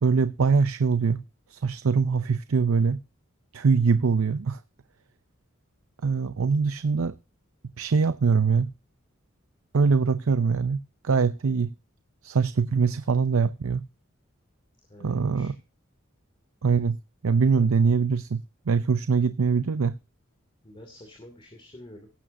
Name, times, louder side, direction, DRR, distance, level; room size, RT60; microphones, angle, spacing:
voice 1, 0.0-1.2 1.5-3.0 3.5-4.6 6.0-7.1 7.8-8.7 9.7-11.7 12.2-13.8 15.0-15.5 16.6-17.0 17.2-20.0, right 5 dB, 90° right, 0.6 m, -23 dB
voice 2, 14.9-15.5 17.5-17.7 20.6-22.1, left 1 dB, 25° left, 2.6 m, -48 dB
18.5 x 8.7 x 2.7 m
head